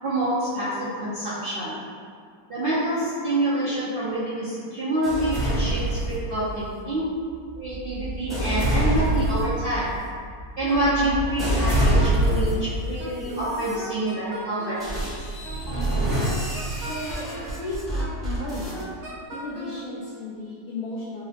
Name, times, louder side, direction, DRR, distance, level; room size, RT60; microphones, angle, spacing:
voice 1, 0.0-1.8 2.5-7.1 7.6-10.1 10.6-15.1, right 1 dB, 90° right, -11 dB, 0.4 m, -27 dB
sound 1, 5.0-6.6 7.3-12.8 13.4-13.7 14.8-18.8, right 1 dB, ahead, 0.6 m, -26 dB
Wind instrument woodwind instrument, 10.7-12.5 13.0-14.9 15.4-17.4 18.0-19.8, right 3 dB, 70° right, 1.3 m, -37 dB
voice 2, 16.8-17.3 17.6-18.1 18.4-18.8 19.3-21.2, left 2 dB, 75° left, -8 dB, 0.8 m, -34 dB
4.7 x 2.1 x 2.7 m, 2.1 s
omnidirectional pair, 2.0 m